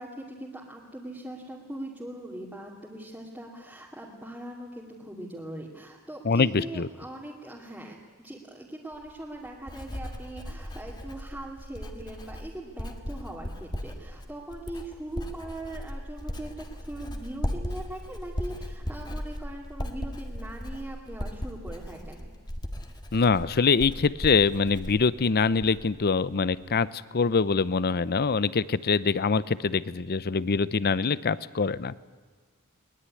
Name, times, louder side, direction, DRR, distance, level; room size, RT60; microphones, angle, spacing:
voice 1, 0.0-22.3, right 1 dB, 5° right, -5 dB, 2.4 m, -41 dB
voice 2, 6.2-6.9 23.1-26.9 27.1-32.0, left 4 dB, 45° left, 18 dB, 0.6 m, -24 dB
Writing, 8.9-26.0 26.3-26.7, equal, 20° left, 1.8 m, -37 dB
21.5 x 20.5 x 9.7 m, 1.4 s
head